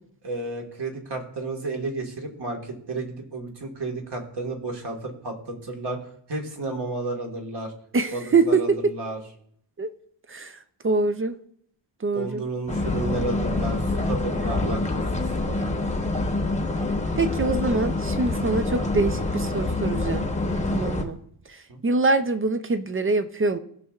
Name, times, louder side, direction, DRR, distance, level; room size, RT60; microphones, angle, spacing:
voice 1, 0.2-6.0 6.3-7.7 8.1-9.2 12.1-16.1 20.6-20.9 21.7-21.8, right 2 dB, 55° right, 1.7 m, -32 dB
voice 2, 7.9-8.9 9.8-9.9 10.3-10.6 10.8-11.4 12.0-12.4 17.2-20.3 20.7-21.2 21.5-21.6 21.8-23.6, right 3 dB, 25° right, 0.4 m, -24 dB
sound 1, 12.7-21.0, left 2 dB, 15° left, 0.9 m, -26 dB
17.0 x 6.4 x 2.4 m
wide cardioid pair, 125°, 49 cm